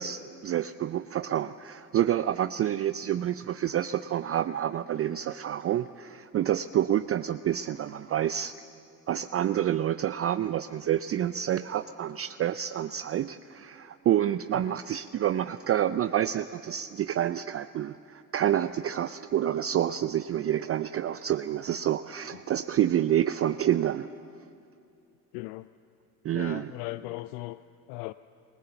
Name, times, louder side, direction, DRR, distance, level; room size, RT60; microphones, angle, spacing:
voice 1, 0.0-8.5 9.1-24.1 26.2-26.7, right 11 dB, 30° right, 0.5 m, -28 dB
voice 2, 25.3-25.7 26.3-27.6 27.9-28.1, left 19 dB, 65° left, 0.6 m, -37 dB
27.0 x 18.0 x 7.1 m
hypercardioid pair, 65°, 50 cm